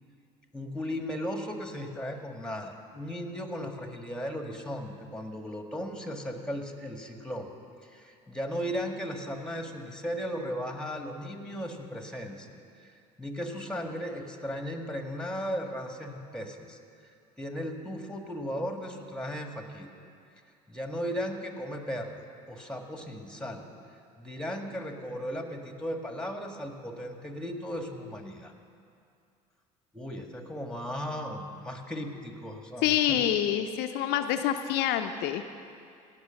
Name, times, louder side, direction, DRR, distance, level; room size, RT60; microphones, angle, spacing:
voice 1, 0.5-7.5 7.9-12.9 13.2-16.8 17.4-19.9 20.7-22.1 22.5-23.7 24.2-28.5 29.9-33.2, equal, 5° left, 4 dB, 1.7 m, -36 dB
voice 2, 32.8-35.4, left 11 dB, 70° left, 6 dB, 0.6 m, -27 dB
17.5 x 6.0 x 7.0 m, 2.4 s
hypercardioid pair, 75°, 18 cm